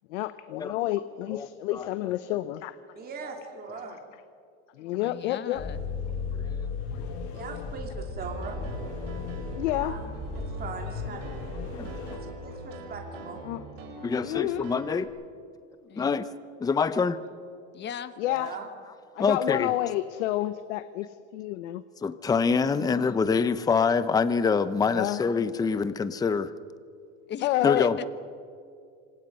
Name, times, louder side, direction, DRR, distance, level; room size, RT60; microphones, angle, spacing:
voice 1, 0.1-2.8 3.9-4.0 4.7-5.7 6.9-7.0 9.5-10.0 11.7-12.3 13.4-13.6 14.2-14.7 18.2-18.5 19.1-21.8 22.7-22.9 24.9-25.2 27.4-27.9, left 14 dB, 80° left, 12 dB, 1.0 m, -30 dB
voice 2, 3.0-4.0 7.3-8.7 9.7-10.1 10.3-11.2 12.1-13.4 18.2-18.7, right 4 dB, 25° right, 2 dB, 2.9 m, -40 dB
voice 3, 4.8-5.8 15.8-16.1 17.7-18.1 27.2-27.5 27.8-28.1, left 9 dB, 30° left, 12 dB, 1.3 m, -37 dB
sound 1, 5.6-12.2, left 4 dB, 60° left, 7.6 m, -35 dB
Piano, 8.2-15.1, right 2 dB, 80° right, 5.8 m, -43 dB
voice 4, 14.0-15.1 16.0-16.2 16.6-17.2 19.2-19.7 22.0-26.5 27.6-28.0, left 5 dB, 10° left, 13 dB, 0.7 m, -25 dB
26.5 x 26.5 x 5.5 m, 2.3 s
supercardioid pair, 135°, 36 cm